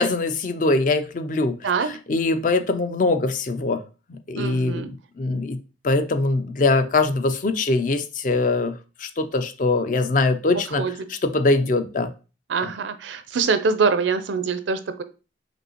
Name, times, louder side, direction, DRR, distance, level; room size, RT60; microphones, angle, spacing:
voice 1, 0.0-1.6 2.1-3.8 4.1-4.9 5.2-5.6 5.8-10.8 11.2-12.1 12.6-12.7, left 3 dB, 45° left, 8 dB, 0.4 m, -22 dB
voice 2, 4.4-4.9 10.8-10.9 12.5-15.0, right 5 dB, 75° right, 11 dB, 0.5 m, -24 dB
5.2 x 2.7 x 2.9 m, 0.33 s
head